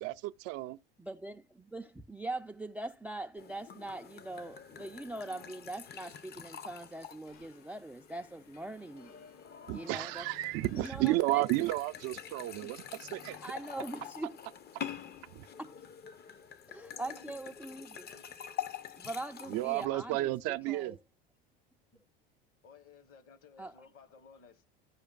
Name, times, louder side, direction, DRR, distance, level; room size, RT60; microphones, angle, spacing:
voice 1, 0.0-0.8 9.7-13.4 15.4-15.5 19.5-21.0, right 18 dB, 55° right, 0.5 m, -32 dB
voice 2, 1.0-9.2 9.7-10.3 10.8-11.4 12.6-12.7 13.4-14.4 15.6-15.8 16.7-18.1 19.0-21.0 23.6-23.7, right 2 dB, 5° right, 0.4 m, -42 dB
sound 1, 3.4-19.9, left 9 dB, 35° left, 0.7 m, -47 dB
sound 2, 7.3-14.1, left 6 dB, 65° left, 1.4 m, -62 dB
sound 3, 9.7-11.9 12.6-14.8, left 3 dB, 85° left, 1.3 m, -62 dB
voice 3, 16.9-18.5 21.9-22.0 22.6-24.7, left 6 dB, 50° left, 1.2 m, -58 dB
15.0 x 5.0 x 2.3 m
hypercardioid pair, 85°, 29 cm